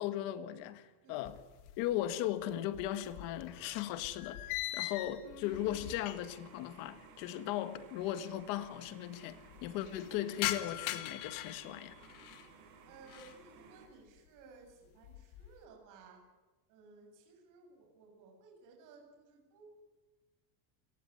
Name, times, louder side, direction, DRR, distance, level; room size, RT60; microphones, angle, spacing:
voice 1, 0.0-1.4 1.8-4.4 4.7-11.9, left 12 dB, 45° left, 1.7 m, -37 dB
sound 1, 1.2-2.1 2.4-6.5 6.8-6.9 7.7-7.8 8.0-8.1 8.4-8.9 9.3-12.5 12.9-13.4 13.9-14.3 14.7-15.6, left 15 dB, 65° left, 2.2 m, -42 dB
sound 2, 5.4-13.9, right 6 dB, 60° right, 6.7 m, -58 dB
voice 2, 12.9-16.2 16.7-19.9, right 4 dB, 40° right, 7.7 m, -58 dB
29.0 x 18.0 x 9.7 m
cardioid pair, 175°, 47 cm